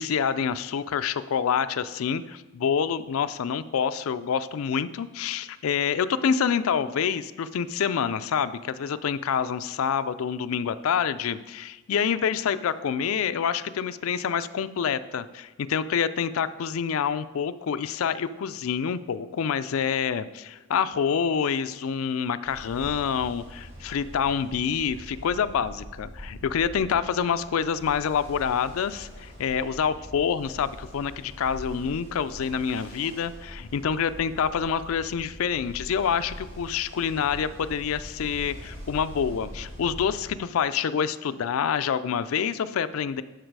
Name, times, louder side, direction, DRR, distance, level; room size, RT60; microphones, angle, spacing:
voice 1, 0.0-43.2, left 7 dB, 75° left, 13 dB, 0.4 m, -27 dB
Ocean, 22.4-40.4, equal, 45° right, 2.6 m, -43 dB
11.5 x 4.0 x 4.7 m, 1.2 s
head